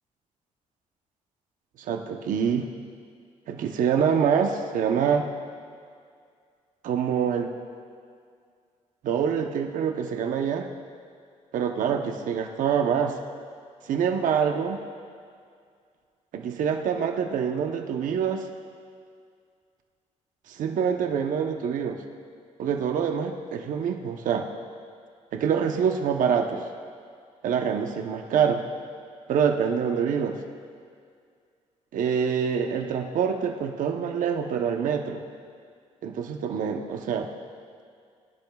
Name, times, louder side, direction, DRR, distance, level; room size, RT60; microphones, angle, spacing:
voice 1, 1.8-2.7 3.5-5.3 6.8-7.5 9.0-10.7 11.5-13.2 13.9-14.8 16.3-18.5 20.5-22.0 22.6-24.5 25.3-26.6 27.4-28.6 29.3-30.4 31.9-35.3 36.0-37.3, right 7 dB, 80° right, 4 dB, 0.9 m, -25 dB
22.5 x 10.5 x 2.4 m, 2.2 s
cardioid pair, 110°, 13 cm